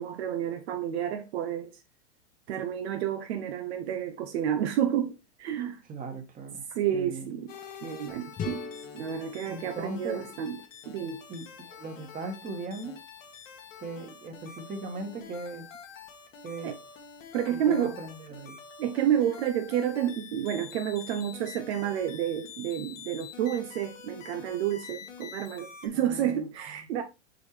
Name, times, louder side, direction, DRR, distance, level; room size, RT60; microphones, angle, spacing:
voice 1, 0.0-1.7 2.5-5.8 6.7-7.5 7.8-10.6 10.9-11.3 16.6-16.8 17.3-18.0 18.8-27.0, right 10 dB, 60° right, 0.9 m, -30 dB
voice 2, 5.9-6.7 6.9-7.3 9.5-10.3 11.3-13.0 13.8-15.7 16.4-16.7 17.5-18.6 25.9-26.9, right 3 dB, 20° right, 1.7 m, -39 dB
sound 1, 7.5-25.9, left 7 dB, 85° left, 1.8 m, -47 dB
sound 2, 8.4-11.2, left 6 dB, 20° left, 0.8 m, -41 dB
6.6 x 4.5 x 3.3 m
hypercardioid pair, 120°, 37 cm